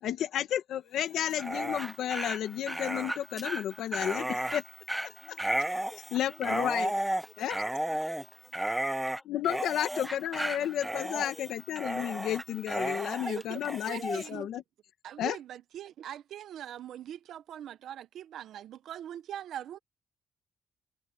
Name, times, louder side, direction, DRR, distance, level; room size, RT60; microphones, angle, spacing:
voice 1, 0.0-4.6 5.3-5.4 6.1-6.9 7.4-7.6 9.3-14.6 15.2-15.4, left 10 dB, 75° left, 1.5 m, -32 dB
Dog, 1.3-14.3, right 1 dB, 5° right, 0.8 m, -33 dB
voice 2, 5.0-9.4, left 3 dB, 20° left, 6.0 m, -55 dB
voice 3, 13.2-13.6 13.9-14.5 15.0-19.8, right 10 dB, 70° right, 0.6 m, -42 dB
cardioid pair, 140°, 0 cm